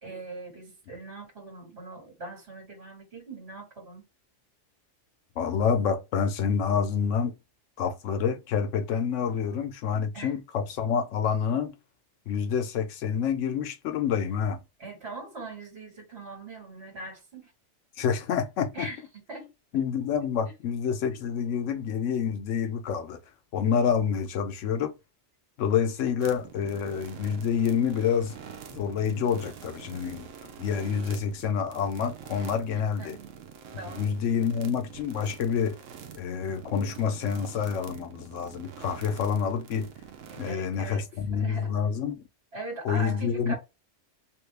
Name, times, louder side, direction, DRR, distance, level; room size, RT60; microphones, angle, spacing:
voice 1, 0.0-4.0 9.1-9.4 10.1-10.3 14.8-17.5 18.7-19.0 19.3-19.5 32.7-33.2 33.8-34.1 40.3-41.7 42.5-43.6, right 2 dB, 60° right, 2.0 m, -41 dB
voice 2, 5.4-7.4 7.8-11.7 12.3-14.6 18.0-18.9 19.7-23.2 23.5-24.9 25.6-28.3 28.7-33.2 34.0-35.8 36.2-39.9 40.4-42.2 42.8-43.5, left 7 dB, 80° left, 0.9 m, -28 dB
sound 1, 26.2-40.5, right 8 dB, 90° right, 1.0 m, -46 dB
3.0 x 2.6 x 3.2 m
omnidirectional pair, 1.3 m